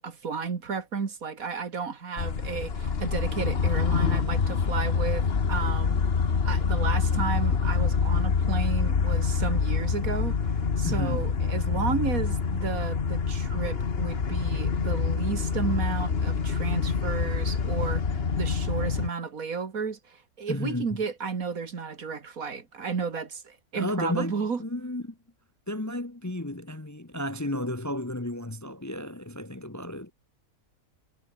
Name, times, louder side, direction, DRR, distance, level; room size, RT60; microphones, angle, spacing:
voice 1, 0.0-6.0 6.5-18.0 18.4-24.6, right 5 dB, 65° right, 2.4 m, -33 dB
sound 1, 2.2-19.1, left 5 dB, 40° left, 1.6 m, -26 dB
voice 2, 10.9-11.3 20.5-21.0 23.7-25.2 25.7-30.1, left 1 dB, 15° left, 0.9 m, -33 dB
omnidirectional pair, 1.6 m